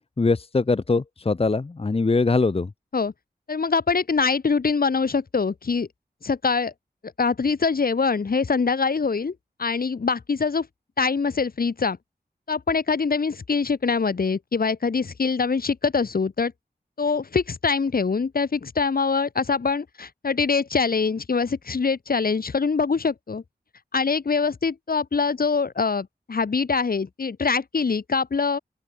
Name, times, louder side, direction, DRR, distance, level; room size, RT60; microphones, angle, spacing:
voice 1, 0.2-2.7, left 3 dB, 35° left, 0.9 m, -22 dB
voice 2, 3.5-5.9 6.2-6.7 7.2-10.7 11.0-12.0 12.5-16.5 17.0-23.4 23.9-28.6, left 5 dB, 60° left, 1.4 m, -24 dB
open air
wide cardioid pair, 75°, 17 cm